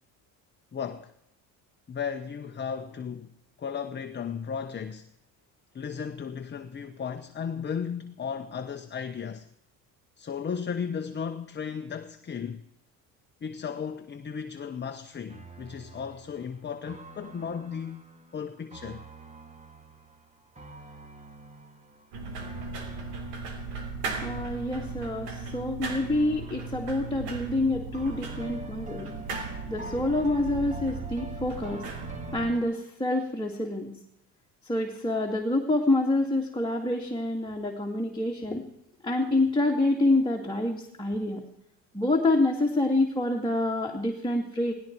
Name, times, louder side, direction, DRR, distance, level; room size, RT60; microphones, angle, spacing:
voice 1, 0.7-1.1 1.9-3.3 3.6-5.1 5.7-9.5 10.2-12.6 13.4-18.0 18.3-19.1, left 6 dB, 25° left, 1.0 m, -35 dB
sound 1, 15.3-25.8 26.1-27.5 27.9-32.6, right 2 dB, 20° right, 2.1 m, -45 dB
sound 2, 22.1-32.5, right 4 dB, 85° right, 3.1 m, -37 dB
voice 2, 24.2-29.1 29.7-31.8 32.3-33.9 34.6-38.7 39.0-41.4 41.9-44.7, left 2 dB, 10° left, 2.2 m, -27 dB
18.0 x 15.5 x 4.6 m
supercardioid pair, 90°, 39 cm